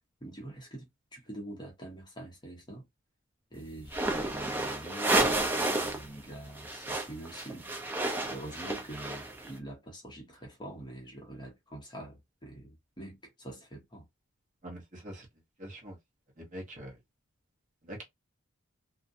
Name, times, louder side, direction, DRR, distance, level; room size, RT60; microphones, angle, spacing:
voice 1, 0.2-2.8 3.5-7.7 8.3-14.1, right 1 dB, 20° left, 0.8 m, -45 dB
sound 1, 3.9-6.1 6.3-9.5, right 2 dB, 10° right, 0.5 m, -31 dB
voice 2, 14.6-15.3 15.6-16.0 16.4-17.0 17.8-18.0, right 1 dB, 35° right, 1.0 m, -44 dB
2.6 x 2.1 x 2.6 m
head